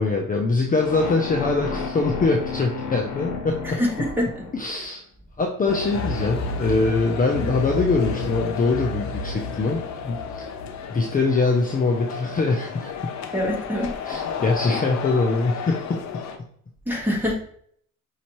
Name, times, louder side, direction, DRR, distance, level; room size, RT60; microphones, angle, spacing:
voice 1, 0.0-3.8 4.5-5.0 5.4-10.5 10.9-13.1 14.0-16.2, left 3 dB, 30° left, 1 dB, 0.6 m, -23 dB
sound 1, 0.8-4.9, left 5 dB, 85° left, 1.2 m, -32 dB
voice 2, 3.6-4.5 13.3-14.0 16.9-17.3, left 1 dB, 5° right, -2 dB, 1.7 m, -25 dB
sound 2, 5.7-16.4, left 4 dB, 65° left, 0.7 m, -31 dB
5.5 x 2.8 x 3.0 m, 0.63 s
cardioid pair, 90°, 30 cm